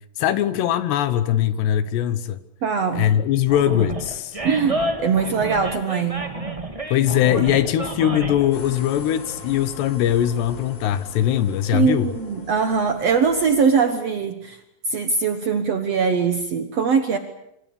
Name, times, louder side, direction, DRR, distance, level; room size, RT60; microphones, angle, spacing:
voice 1, 0.2-2.4 3.0-4.4 6.9-12.1, left 11 dB, 75° left, 3.1 m, -21 dB
voice 2, 2.6-3.1 4.4-6.3 11.7-14.6 14.9-17.2, right 5 dB, 80° right, 1.4 m, -21 dB
Animal, 3.5-8.5, right 2 dB, 25° right, 0.6 m, -29 dB
sound 1, 8.5-13.7, left 4 dB, 55° left, 4.9 m, -40 dB
26.5 x 25.5 x 7.0 m
omnidirectional pair, 5.0 m